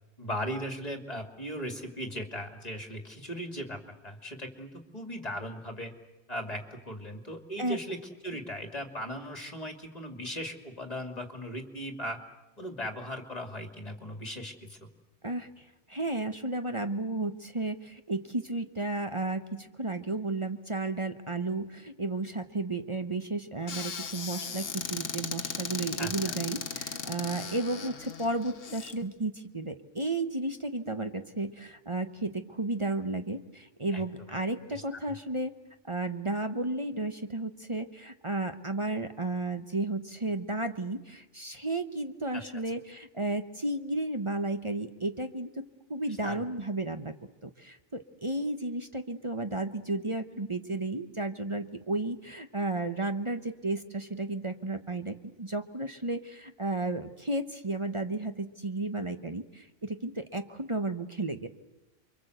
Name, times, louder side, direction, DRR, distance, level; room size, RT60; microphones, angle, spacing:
voice 1, 0.2-5.9 6.3-12.2 12.6-14.8 26.0-26.2 33.9-34.0 34.3-34.4 34.7-34.8 42.3-42.4 46.2-46.4, equal, 30° left, 5 dB, 2.8 m, -38 dB
voice 2, 15.2-35.5 35.8-45.6 45.9-47.1 47.4-61.5, right 2 dB, 25° right, 8 dB, 1.0 m, -33 dB
Squeak / Cupboard open or close, 23.7-28.9, left 6 dB, 85° left, 1.6 m, -37 dB
28.5 x 24.0 x 8.0 m, 1.0 s
omnidirectional pair, 1.3 m